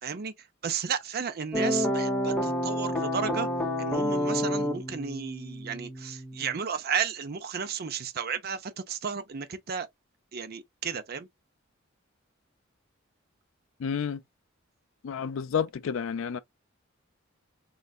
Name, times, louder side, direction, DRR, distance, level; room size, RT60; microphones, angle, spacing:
voice 1, 0.0-3.5 3.8-9.9 10.3-11.3, right 6 dB, 50° right, 0.6 m, -33 dB
sound 1, 1.5-6.6, equal, 5° left, 1.1 m, -29 dB
voice 2, 13.8-14.2 15.0-16.4, left 7 dB, 70° left, 0.4 m, -30 dB
3.8 x 3.2 x 2.4 m
head